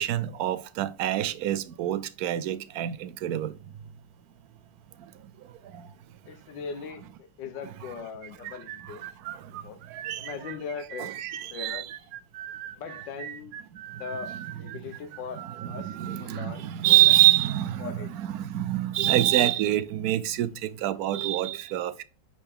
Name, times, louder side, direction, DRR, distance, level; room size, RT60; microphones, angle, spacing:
voice 1, 0.0-3.5 5.7-5.9 7.9-8.0 8.5-8.6 8.9-9.1 9.3-9.5 9.9-10.6 11.0-11.9 14.3-14.4 15.3-22.0, right 14 dB, 70° right, 0.9 m, -26 dB
voice 2, 6.3-9.0 9.6-9.8 10.2-11.1 11.5-11.9 12.8-13.5 13.9-14.3 14.6-17.0 17.8-18.3, left 6 dB, 90° left, 1.5 m, -40 dB
sound 1, 8.2-16.3, right 11 dB, 85° right, 1.3 m, -40 dB
9.9 x 4.5 x 3.6 m
omnidirectional pair, 1.9 m